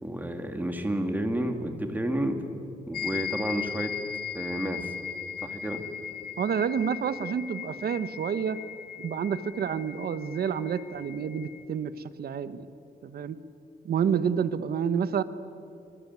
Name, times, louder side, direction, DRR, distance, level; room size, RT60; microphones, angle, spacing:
voice 1, 0.0-2.4 2.9-3.9 4.3-4.9 5.4-5.8, right 1 dB, 10° right, 5 dB, 2.3 m, -30 dB
sound 1, 2.9-11.6, left 8 dB, 70° left, 1.3 m, -38 dB
voice 2, 6.4-8.6 9.0-12.7 13.0-13.4 13.8-15.2, right 7 dB, 70° right, 13 dB, 1.1 m, -29 dB
24.5 x 22.5 x 9.5 m, 2.7 s
wide cardioid pair, 150°, 16 cm